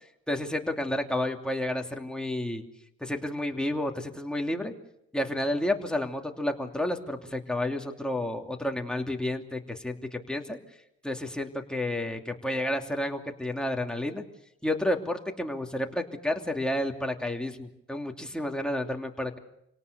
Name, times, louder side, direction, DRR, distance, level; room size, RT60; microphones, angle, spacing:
voice 1, 0.3-2.6 3.0-4.7 5.1-10.6 11.0-14.2 14.6-19.4, left 1 dB, 5° left, 2 dB, 2.8 m, -31 dB
28.5 x 18.0 x 6.8 m, 0.78 s
cardioid pair, 90°, 30 cm